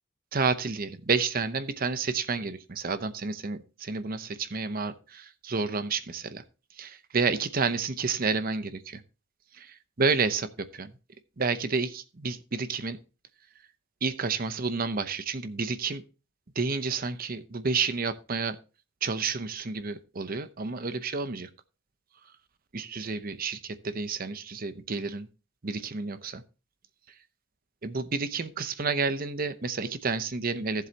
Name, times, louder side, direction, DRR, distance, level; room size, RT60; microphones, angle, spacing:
voice 1, 0.3-6.4 6.8-9.0 9.5-10.9 11.4-13.0 14.0-16.0 16.6-18.6 19.0-21.5 22.7-25.3 25.6-26.4 27.8-30.9, right 4 dB, 45° right, 12 dB, 0.8 m, -30 dB
14.5 x 7.7 x 2.8 m, 0.32 s
head